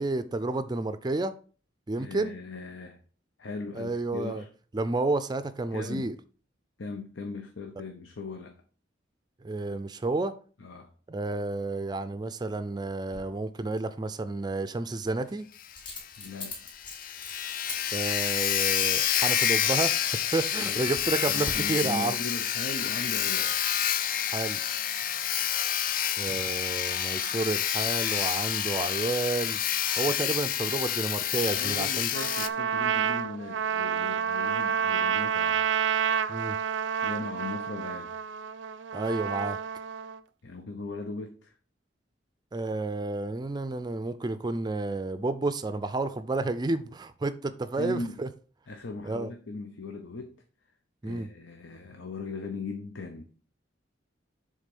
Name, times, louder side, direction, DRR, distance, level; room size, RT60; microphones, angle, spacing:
voice 1, 0.0-1.3 1.9-2.3 3.8-4.4 4.7-6.1 9.4-10.3 11.1-15.5 17.9-22.2 24.3-24.6 26.2-29.6 30.0-32.1 36.3-36.6 38.9-39.6 42.5-48.3 49.1-49.3 51.0-51.3, right 2 dB, 20° right, 0.4 m, -30 dB
voice 2, 2.0-3.0 3.4-4.5 5.7-6.2 6.8-8.6 10.6-10.9 13.1-13.2 16.2-16.6 20.6-20.9 21.3-23.6 31.4-35.6 37.0-38.2 40.4-41.5 47.8-48.2 48.7-50.4 51.0-53.2, left 3 dB, 85° left, 0.8 m, -39 dB
Coin (dropping), 13.1-13.2 15.8-17.8 18.1-18.2 18.7-18.9 19.2-20.0 20.6-21.1 21.4-21.5, left 3 dB, 25° left, 3.1 m, -39 dB
Sawing, 15.6-15.7 16.0-16.1 16.5-16.6 16.8-32.5, left 10 dB, 45° left, 0.4 m, -28 dB
Trumpet, 32.1-40.2, right 8 dB, 85° right, 0.5 m, -29 dB
7.4 x 3.6 x 5.2 m
head